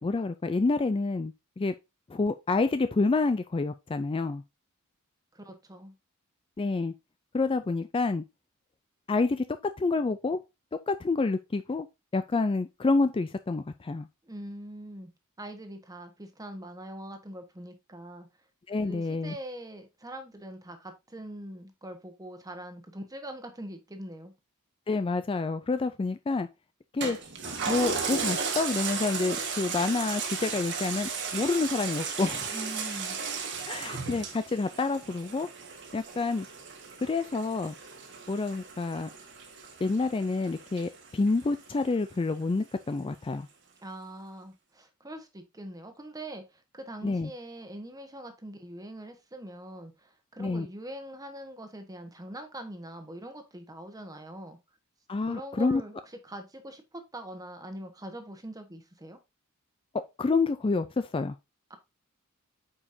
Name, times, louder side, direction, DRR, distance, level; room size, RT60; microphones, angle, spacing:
voice 1, 0.0-1.7 2.1-4.4 6.6-6.9 7.3-8.2 9.1-9.5 9.8-10.4 10.9-11.9 12.1-14.1 18.7-19.3 24.9-26.5 26.9-27.2 27.7-32.5 33.7-35.5 35.9-36.5 37.0-37.7 38.3-39.1 39.8-43.5 47.0-47.3 50.4-50.7 55.1-55.8 60.2-61.3, left 3 dB, 25° left, 0.4 m, -28 dB
voice 2, 5.3-5.9 14.2-15.1 15.4-18.3 18.8-24.3 32.5-33.2 43.8-54.6 55.3-59.2 61.7-61.8, right 1 dB, 15° right, 1.3 m, -43 dB
Toilet flush, 27.0-41.8 42.3-42.4, right 5 dB, 55° right, 1.6 m, -35 dB
8.6 x 5.1 x 2.7 m
head